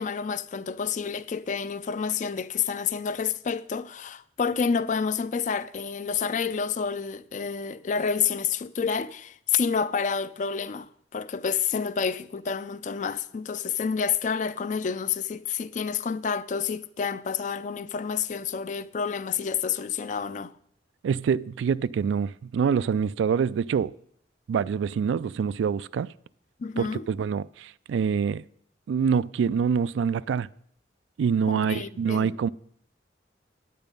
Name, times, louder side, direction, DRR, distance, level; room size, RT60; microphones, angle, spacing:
voice 1, 0.0-20.5 26.6-27.0 31.5-32.3, left 6 dB, 40° left, 0.4 m, -29 dB
voice 2, 21.0-23.9 24.5-26.1 26.8-28.4 28.9-30.5 31.2-32.5, right 6 dB, 85° right, 0.3 m, -25 dB
9.0 x 8.8 x 5.2 m
head